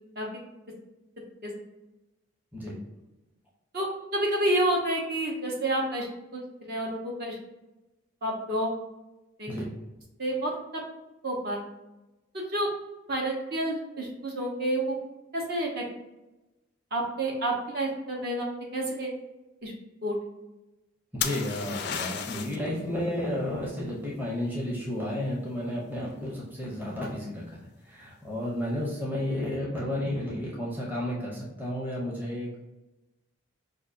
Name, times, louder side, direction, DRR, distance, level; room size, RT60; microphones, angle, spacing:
voice 1, 3.7-6.1 6.3-7.4 8.2-8.7 9.4-9.5 10.2-10.5 11.2-11.6 12.3-12.7 13.1-15.0 15.3-15.8 16.9-19.1 19.6-19.7 20.0-20.2, right 1 dB, 50° right, -2 dB, 0.8 m, -29 dB
voice 2, 21.1-27.6 27.8-32.6, left 1 dB, 10° right, -5 dB, 0.7 m, -32 dB
sound 1, 21.2-22.7 26.3-26.8, left 8 dB, 55° left, 0.3 m, -33 dB
5.0 x 2.4 x 2.5 m, 1.0 s
head